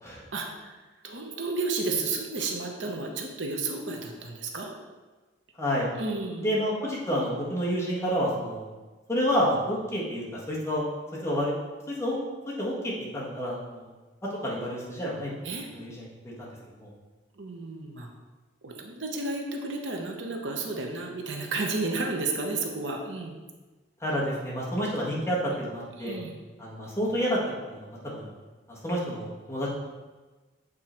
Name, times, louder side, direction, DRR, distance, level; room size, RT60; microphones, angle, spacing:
voice 1, 0.3-4.7 6.0-6.5 15.4-15.7 17.4-18.1 18.6-23.4 25.9-26.4, right 3 dB, 75° right, 2 dB, 0.9 m, -32 dB
voice 2, 5.6-5.9 6.4-8.7 9.1-10.9 11.2-11.5 11.9-12.2 12.6-13.9 14.2-16.5 16.8-16.9 24.0-26.2 26.6-27.4 27.7-28.3 28.7-29.7, equal, 15° left, -6 dB, 1.5 m, -29 dB
7.7 x 3.8 x 4.4 m, 1.3 s
head